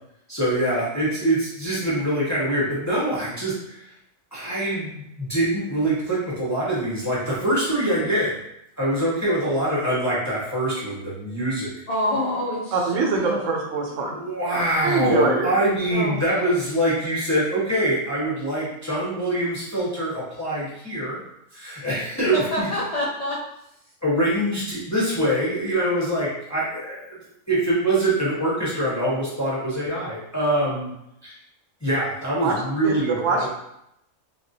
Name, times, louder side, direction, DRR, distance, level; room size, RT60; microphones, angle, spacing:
voice 1, 0.3-3.9 4.3-8.3 8.8-11.7 14.1-21.1 21.5-22.7 24.0-27.2 27.5-30.9 31.2-31.3 31.8-33.5, right 1 dB, 20° left, -7 dB, 0.4 m, -24 dB
voice 2, 11.9-13.5 15.9-16.5 22.3-23.4, left 1 dB, 85° left, -6 dB, 0.3 m, -27 dB
voice 3, 12.7-14.1 14.8-15.5 16.2-16.3 32.4-32.6 32.8-33.5, right 4 dB, 75° right, 0 dB, 1.0 m, -23 dB
3.3 x 2.3 x 2.7 m, 0.81 s
omnidirectional pair, 1.4 m